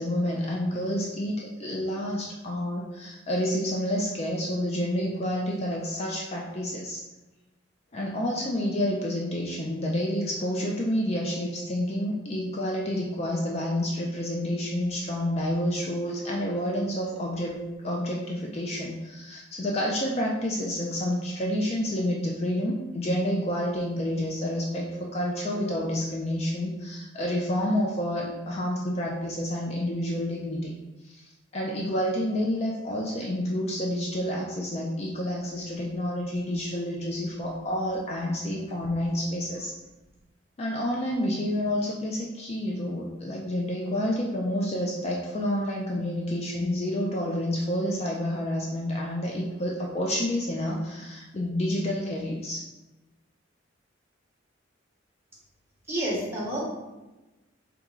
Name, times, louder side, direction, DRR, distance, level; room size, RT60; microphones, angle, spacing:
voice 1, 0.0-7.0 7.9-30.7 31.0-39.7 40.6-52.7, left 1 dB, 30° left, -2 dB, 0.4 m, -29 dB
voice 2, 55.9-56.7, right 1 dB, 10° right, -6 dB, 1.0 m, -29 dB
3.5 x 3.0 x 3.6 m, 1.1 s
head